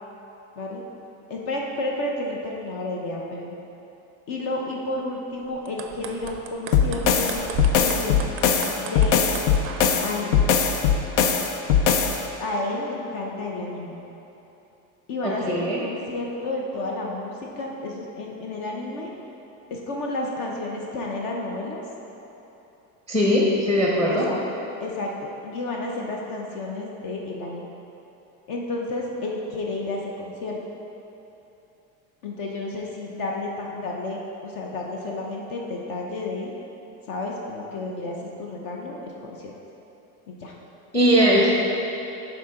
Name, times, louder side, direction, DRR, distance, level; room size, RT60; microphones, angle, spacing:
voice 1, 1.3-3.6 4.3-7.5 7.7-8.2 8.8-9.3 10.0-10.5 12.4-14.0 15.1-19.1 19.7-21.8 24.1-24.4 24.8-27.7 28.5-30.6 32.2-36.5 37.1-39.5 40.3-40.6 41.2-41.5, left 2 dB, 55° left, -1 dB, 0.8 m, -31 dB
sound 1, 5.5-10.0, right 7 dB, 35° right, 0.4 m, -36 dB
sound 2, 6.7-12.2, left 6 dB, 85° left, 0.7 m, -20 dB
voice 2, 15.2-15.8 23.1-24.3 40.9-41.5, equal, 5° left, -4 dB, 0.7 m, -20 dB
6.1 x 3.9 x 5.7 m, 3.0 s
supercardioid pair, 130°, 42 cm